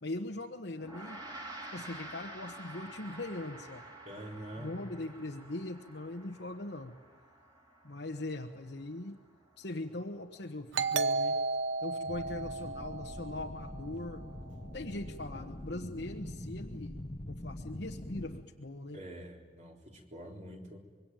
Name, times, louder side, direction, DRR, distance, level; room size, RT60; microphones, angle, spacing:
voice 1, 0.0-1.2 1.7-3.8 4.6-7.0 7.8-9.2 9.6-11.4 11.8-14.2 14.6-19.0, left 2 dB, 70° left, 0 dB, 1.3 m, -41 dB
Gong, 0.8-10.4, right 2 dB, 20° right, 3.4 m, -50 dB
voice 2, 4.0-4.8 18.9-20.8, equal, 40° right, 1 dB, 3.8 m, -46 dB
Doorbell, 10.7-14.1, right 3 dB, 80° right, 0.9 m, -33 dB
sound 1, 12.1-18.4, left 1 dB, 30° left, 1.1 m, -44 dB
25.5 x 23.0 x 9.2 m, 1.5 s
head